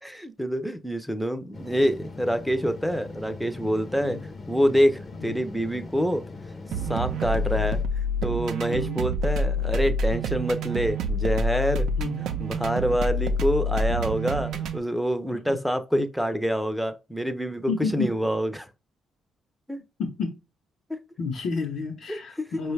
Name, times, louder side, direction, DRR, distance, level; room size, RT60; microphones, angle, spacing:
voice 1, 0.0-4.2 4.5-6.2 6.9-7.8 8.2-11.9 12.2-18.7 19.7-19.8 20.9-21.0 22.1-22.5, equal, ahead, 0.5 m, -26 dB
sound 1, 1.5-7.8, left 3 dB, 40° left, 0.7 m, -40 dB
voice 2, 3.9-4.2 5.1-5.4 8.7-9.0 12.0-12.2 15.5-15.6 17.7-18.1 20.0-20.3 21.2-22.7, left 4 dB, 65° left, 0.8 m, -30 dB
sound 2, 6.7-14.8, equal, 80° right, 0.5 m, -27 dB
4.9 x 2.3 x 3.2 m
cardioid pair, 90°, 0 cm